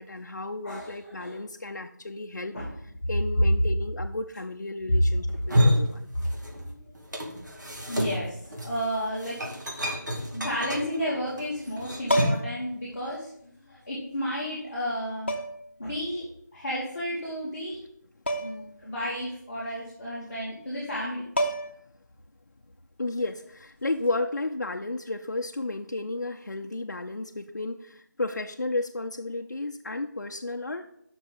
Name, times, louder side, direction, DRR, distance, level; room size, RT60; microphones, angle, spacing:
voice 1, 0.0-6.1 23.0-30.9, left 2 dB, 65° left, 3 dB, 0.6 m, -33 dB
voice 2, 0.6-1.4 2.5-2.7 4.9-5.0 6.6-6.8 7.9-9.4 9.7-9.8 10.1-13.3 13.7-15.4 15.8-16.2 16.5-17.8 18.3-21.2, equal, 5° left, -16 dB, 1.3 m, -32 dB
sound 1, 5.3-6.7 7.0-12.5, equal, 70° right, 2.3 m, -28 dB
sound 2, 12.0-12.7 14.0-14.1 15.3-15.7 18.3-18.7 19.0-19.1 20.9-21.0 21.4-21.9 23.9-24.1, right 1 dB, 35° left, 0.9 m, -29 dB
7.6 x 6.2 x 5.2 m, 0.72 s
figure-of-eight pair, 180°, 10 cm